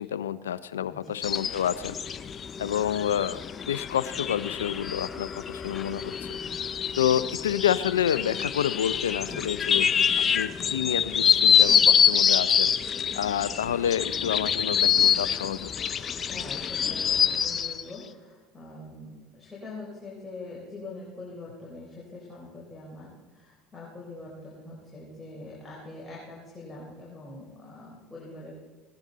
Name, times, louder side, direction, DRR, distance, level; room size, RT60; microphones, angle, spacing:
voice 1, 0.0-1.9 2.6-3.4 3.7-6.4 7.0-9.9 10.3-12.7 13.1-15.7, left 10 dB, 85° left, 16 dB, 0.4 m, -28 dB
sound 1, 1.2-17.8, left 8 dB, 35° left, 0.6 m, -25 dB
voice 2, 9.2-9.6 15.9-28.5, left 2 dB, 10° left, -6 dB, 4.1 m, -43 dB
18.0 x 10.5 x 4.0 m, 1.3 s
hypercardioid pair, 80°, 0 cm